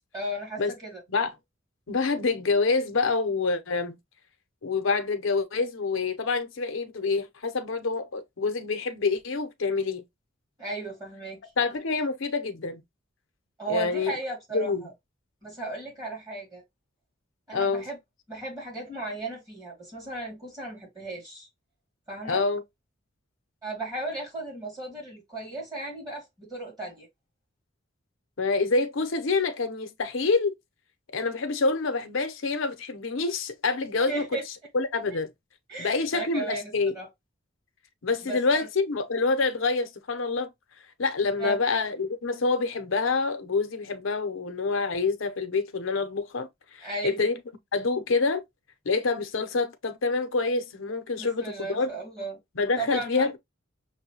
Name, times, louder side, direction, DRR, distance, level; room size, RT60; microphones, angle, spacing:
voice 1, 0.1-1.0 10.6-11.4 13.6-14.9 15.4-16.6 17.5-18.0 18.3-21.5 22.1-22.4 23.6-27.1 34.1-34.4 35.1-35.2 35.7-37.1 38.2-38.7 41.4-41.6 46.8-47.3 51.1-52.4 52.8-53.4, right 2 dB, 20° right, 2.4 m, -35 dB
voice 2, 1.9-4.0 4.6-10.0 11.6-12.8 13.7-14.1 14.5-14.8 17.5-17.9 22.3-22.6 28.4-30.5 31.1-34.3 34.7-35.3 35.8-37.0 38.0-40.5 41.0-46.5 46.7-47.3 47.7-48.4 48.8-51.9 52.6-53.4, left 4 dB, 80° left, 0.7 m, -27 dB
6.1 x 2.2 x 2.9 m
head